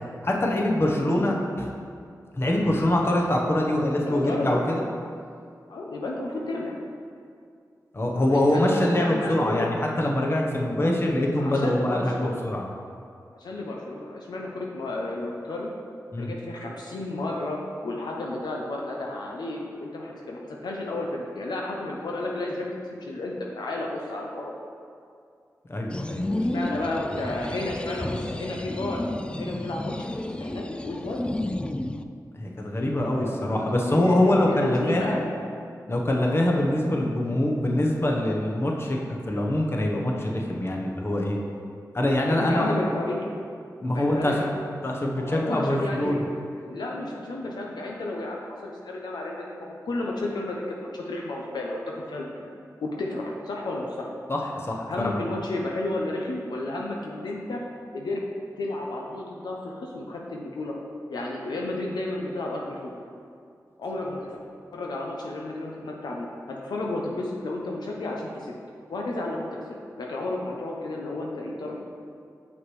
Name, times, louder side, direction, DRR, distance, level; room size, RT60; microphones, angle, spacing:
voice 1, 0.2-1.7 2.3-4.8 7.9-12.6 16.1-16.3 25.7-26.7 32.3-35.2 35.9-41.4 41.9-42.8 43.8-44.5 44.8-46.2 54.3-55.2, left 1 dB, 35° left, -1 dB, 1.0 m, -24 dB
voice 2, 0.9-1.2 4.1-4.6 5.7-6.8 8.1-9.7 10.8-11.0 11.4-12.5 13.4-15.7 16.1-22.7 23.0-24.5 26.3-31.2 33.1-35.3 42.2-43.4 43.9-44.4 45.2-46.2 46.5-52.5 52.8-54.1 54.9-57.6 57.9-58.2 58.6-60.7 61.1-62.9 63.8-64.3 64.7-68.5 68.9-69.6 70.0-71.8, left 2 dB, 85° left, -1 dB, 0.6 m, -32 dB
sound 1, 25.9-32.0, left 1 dB, 15° left, 0.3 m, -31 dB
6.2 x 5.8 x 3.2 m, 2.3 s
cardioid pair, 45°, 7 cm